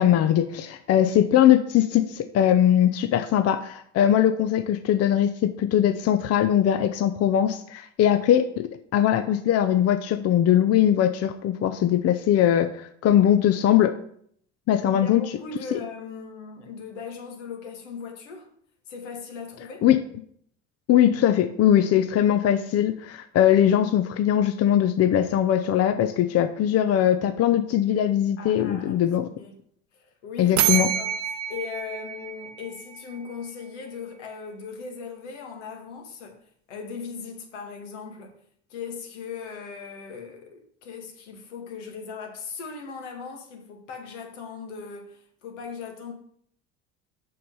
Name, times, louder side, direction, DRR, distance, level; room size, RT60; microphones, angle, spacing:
voice 1, 0.0-13.9 14.7-15.2 15.7-15.8 19.8-20.0 20.9-29.3 30.4-30.9, left 10 dB, 45° left, 0.7 m, -21 dB
voice 2, 14.9-18.5 18.9-19.8 28.4-29.1 29.4-29.6 29.9-31.1 31.5-36.4 36.7-38.4 38.7-46.1, left 5 dB, 80° left, 1.8 m, -38 dB
sound 1, 30.6-33.3, right 11 dB, 55° right, 0.9 m, -27 dB
6.6 x 5.6 x 5.4 m
hypercardioid pair, 70°, 35 cm